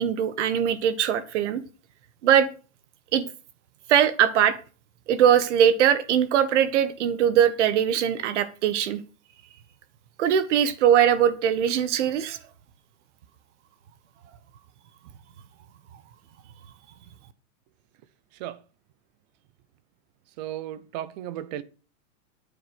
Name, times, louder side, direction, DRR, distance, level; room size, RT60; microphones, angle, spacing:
voice 1, 0.0-1.6 2.2-2.5 3.1-3.2 3.9-4.5 5.1-9.0 10.2-12.4, right 9 dB, 55° right, 14 dB, 1.6 m, -21 dB
voice 2, 20.4-21.6, right 12 dB, 30° right, 17 dB, 0.8 m, -34 dB
9.3 x 8.7 x 6.2 m, 0.35 s
supercardioid pair, 170°, 42 cm